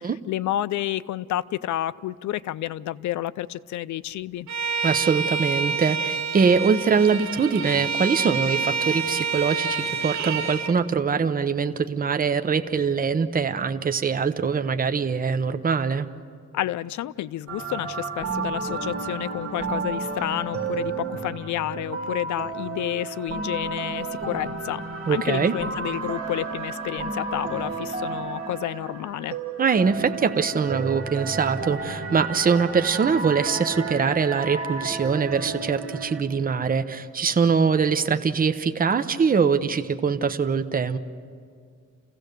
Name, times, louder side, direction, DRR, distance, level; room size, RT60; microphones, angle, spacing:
voice 1, 0.0-4.5 16.5-24.8 25.1-29.4, left 13 dB, 80° left, 17 dB, 0.5 m, -30 dB
Bowed string instrument, 4.5-10.8, right 5 dB, 70° right, 1.2 m, -28 dB
voice 2, 4.8-16.1 25.1-25.5 29.6-41.0, right 5 dB, 30° right, 9 dB, 0.8 m, -23 dB
sound 1, 17.5-36.2, right 4 dB, 50° right, 2.9 m, -32 dB
29.0 x 16.0 x 6.7 m, 2.1 s
cardioid pair, 120°, 29 cm